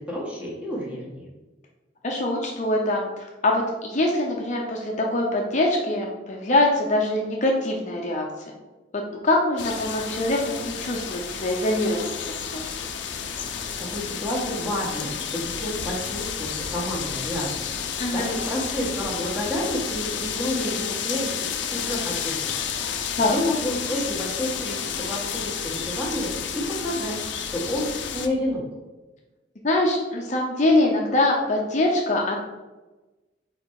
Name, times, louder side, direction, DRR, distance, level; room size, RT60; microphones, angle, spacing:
voice 1, 0.1-1.3 13.9-27.2 27.5-28.6, left 1 dB, 5° right, -5 dB, 1.7 m, -30 dB
voice 2, 2.0-8.3 8.9-12.2 12.5-12.8 18.0-18.3 23.2-23.3 29.6-32.4, left 1 dB, 40° left, 0 dB, 0.7 m, -23 dB
sound 1, 9.6-28.3, left 7 dB, 80° left, 0.5 m, -31 dB
4.5 x 4.4 x 4.8 m, 1.1 s
head